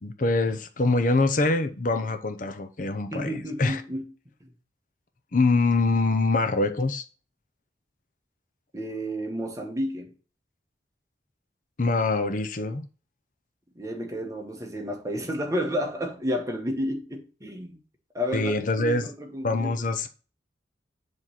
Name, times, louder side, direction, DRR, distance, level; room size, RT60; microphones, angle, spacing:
voice 1, 0.0-3.8 5.3-7.0 11.8-12.9 18.3-19.1 19.4-20.1, left 3 dB, 50° left, 0.7 m, -24 dB
voice 2, 3.1-4.0 8.7-10.1 13.8-17.8 18.1-19.8, equal, 20° right, 1.2 m, -31 dB
7.4 x 3.2 x 5.6 m
head